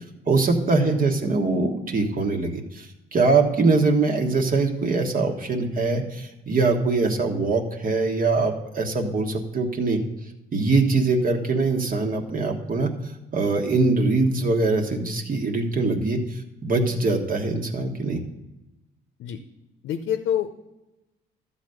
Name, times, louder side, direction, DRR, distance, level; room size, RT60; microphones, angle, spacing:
voice 1, 0.3-10.0 10.5-12.9 13.3-18.2, right 3 dB, 45° right, 4 dB, 1.5 m, -23 dB
voice 2, 19.8-20.5, left 9 dB, 80° left, 8 dB, 0.7 m, -26 dB
12.5 x 4.1 x 7.9 m, 0.99 s
cardioid pair, 90°, 20 cm